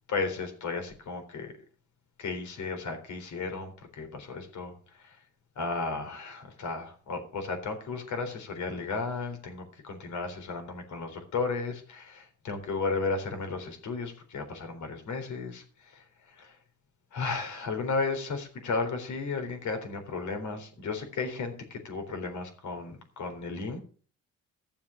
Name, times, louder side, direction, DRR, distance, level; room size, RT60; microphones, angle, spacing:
voice 1, 0.1-1.5 2.2-4.7 5.0-5.1 5.6-15.6 15.9-16.0 16.4-16.5 17.1-23.8, left 4 dB, 70° left, 6 dB, 3.8 m, -34 dB
13.5 x 7.1 x 7.2 m, 0.43 s
cardioid pair, 90°, 30 cm